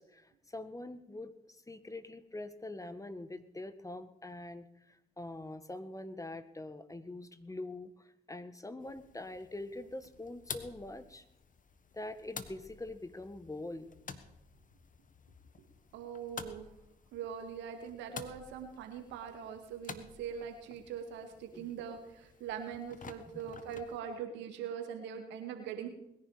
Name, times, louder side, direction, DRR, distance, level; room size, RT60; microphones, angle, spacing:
voice 1, 0.0-11.2 11.9-14.0 21.5-21.7 23.3-23.4, left 2 dB, 20° left, 11 dB, 1.5 m, -44 dB
sound 1, 8.8-24.0, left 5 dB, 45° left, 1.4 m, -51 dB
voice 2, 15.9-16.6 17.1-25.9, right 7 dB, 85° right, 6 dB, 2.1 m, -42 dB
21.0 x 10.5 x 5.0 m, 0.81 s
hypercardioid pair, 45°, 18 cm